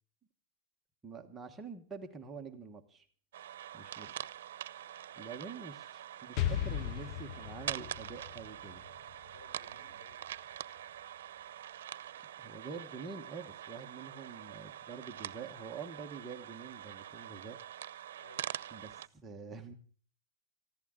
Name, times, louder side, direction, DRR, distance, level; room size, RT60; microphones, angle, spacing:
voice 1, 1.0-3.1 3.7-4.2 5.2-8.8 12.4-17.6 18.7-19.7, right 5 dB, 10° right, 3 dB, 1.2 m, -46 dB
sound 1, 3.3-19.1, right 11 dB, 90° right, 0.6 m, -45 dB
voice 2, 4.9-5.5 9.2-10.3 18.2-18.8, left 2 dB, 70° left, 8 dB, 5.4 m, -62 dB
Explosion, 6.4-10.1, left 11 dB, 35° left, 0.6 m, -37 dB
20.0 x 14.5 x 3.7 m, 0.43 s
supercardioid pair, 170°, 0 cm